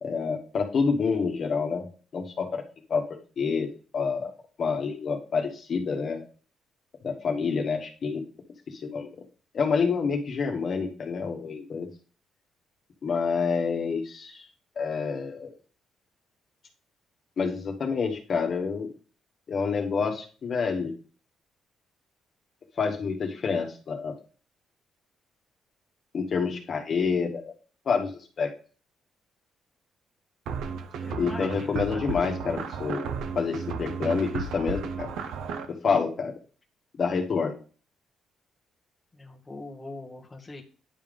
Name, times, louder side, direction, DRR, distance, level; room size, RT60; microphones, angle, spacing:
voice 1, 0.0-1.9 2.1-2.6 2.9-3.0 3.4-6.2 7.0-8.2 8.7-9.1 9.5-11.9 13.0-14.5 14.7-15.5 17.4-18.9 19.5-20.9 22.8-24.2 26.1-27.5 27.8-28.1 28.4-28.5 31.1-33.0 33.3-35.1 35.7-36.3 37.0-37.6, left 5 dB, 50° left, 2 dB, 1.6 m, -28 dB
sound 1, 30.5-35.7, right 5 dB, 80° right, 0.9 m, -34 dB
voice 2, 31.0-32.2 39.1-40.6, left 2 dB, 25° left, 0 dB, 1.4 m, -41 dB
10.0 x 3.6 x 5.2 m, 0.38 s
cardioid pair, 90°, 0 cm